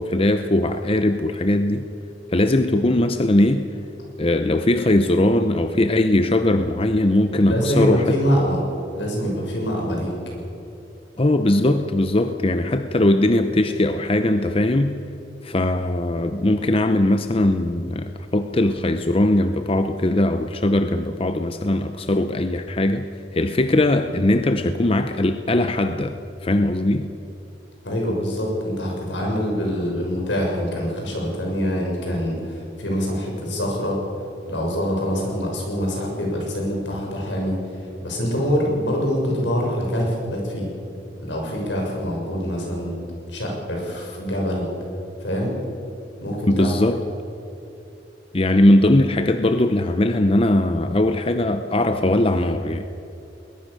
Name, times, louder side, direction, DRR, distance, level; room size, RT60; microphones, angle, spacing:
voice 1, 0.0-1.9 2.3-3.7 4.2-8.2 11.2-15.0 15.4-23.1 23.3-27.1 46.5-47.0 48.3-52.8, left 1 dB, 30° left, 8 dB, 0.7 m, -20 dB
voice 2, 7.5-8.6 8.9-10.1 27.8-34.0 34.4-37.6 38.0-40.7 41.2-43.0 43.3-44.7 45.2-45.6 46.2-46.7, equal, 80° left, 0 dB, 6.8 m, -24 dB
20.5 x 20.5 x 6.8 m, 2.9 s
head